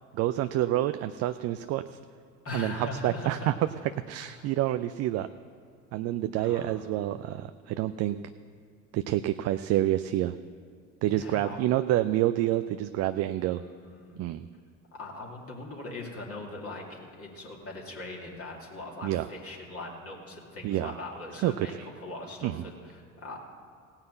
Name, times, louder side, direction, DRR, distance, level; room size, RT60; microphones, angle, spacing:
voice 1, 0.1-2.0 2.5-3.5 4.1-5.3 5.9-8.2 8.9-10.3 11.0-13.6 14.2-14.5 19.0-19.3 20.6-20.9 21.4-21.9 22.4-22.7, right 14 dB, 40° right, 11 dB, 0.4 m, -28 dB
voice 2, 2.4-3.5 4.2-4.5 6.4-6.7 11.1-11.6 13.5-14.2 14.9-23.4, left 2 dB, 35° left, -2 dB, 2.5 m, -41 dB
16.5 x 5.7 x 7.9 m, 2.3 s
hypercardioid pair, 70°, 40 cm